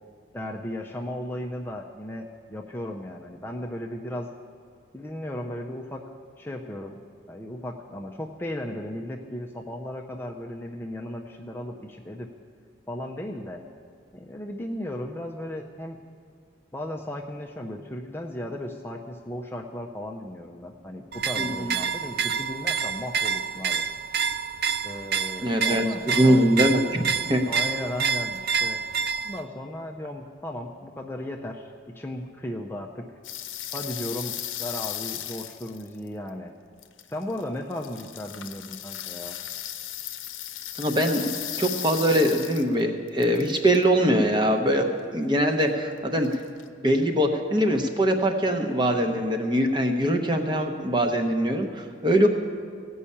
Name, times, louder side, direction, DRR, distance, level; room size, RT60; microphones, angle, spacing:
voice 1, 0.3-4.3 4.9-6.0 6.4-7.0 7.3-12.3 12.9-13.6 14.1-16.0 16.7-23.8 24.8-26.5 27.5-28.8 29.2-33.1 33.7-36.5 37.1-39.4, left 1 dB, 10° left, 1 dB, 0.5 m, -35 dB
sound 1, 21.1-29.4, right 6 dB, 50° right, 0.4 m, -28 dB
voice 2, 21.4-21.7 25.4-27.0 27.3-27.4 40.8-41.3 41.6-44.9 45.1-46.4 46.8-52.3, equal, 25° right, 4 dB, 0.8 m, -22 dB
sound 2, 33.2-36.3 36.8-37.4 37.7-42.8 43.1-43.8 46.2-46.7, left 12 dB, 85° left, 0.7 m, -36 dB
16.0 x 5.5 x 8.5 m, 2.1 s
head